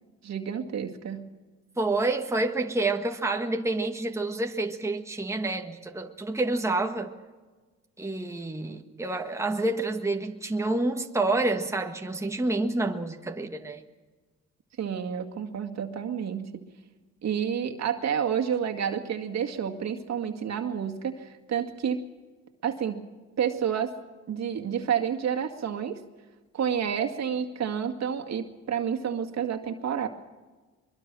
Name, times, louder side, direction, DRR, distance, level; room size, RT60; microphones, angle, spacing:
voice 1, 0.2-1.3 14.8-16.6 17.2-22.0 22.6-23.1 23.4-23.9 24.3-26.0 26.5-30.1, right 8 dB, 60° right, 2.1 m, -29 dB
voice 2, 1.8-7.2 8.0-13.8, right 2 dB, 10° right, 1.5 m, -28 dB
24.0 x 22.5 x 6.2 m
cardioid pair, 90°, 30 cm